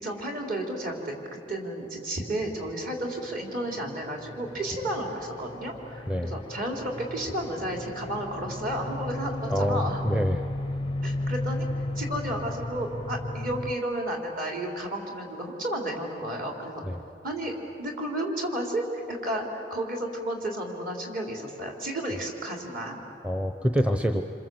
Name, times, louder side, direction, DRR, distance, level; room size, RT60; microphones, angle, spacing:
voice 1, 0.0-10.0 11.0-11.7 12.0-16.8 17.2-23.0, right 1 dB, 50° right, 1 dB, 3.9 m, -32 dB
sound 1, 2.9-13.7, left 1 dB, 25° left, 0.5 m, -35 dB
voice 2, 6.1-6.4 9.5-10.4 16.8-17.0 23.2-24.2, equal, 5° right, 6 dB, 0.8 m, -26 dB
27.5 x 26.5 x 7.9 m, 2.8 s
head